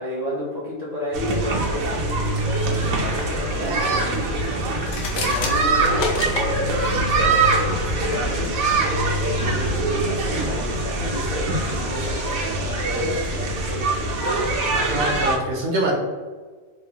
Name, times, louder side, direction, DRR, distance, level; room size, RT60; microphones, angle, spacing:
voice 1, 0.0-4.4 5.1-15.0, left 1 dB, 45° left, -6 dB, 0.5 m, -32 dB
sound 1, 1.1-15.4, right 2 dB, 80° right, 1.0 m, -23 dB
sound 2, 4.8-6.5, left 4 dB, 80° left, 1.0 m, -29 dB
voice 2, 14.7-15.9, right 1 dB, 65° right, -1 dB, 0.8 m, -24 dB
3.1 x 2.3 x 2.7 m, 1.5 s
omnidirectional pair, 1.4 m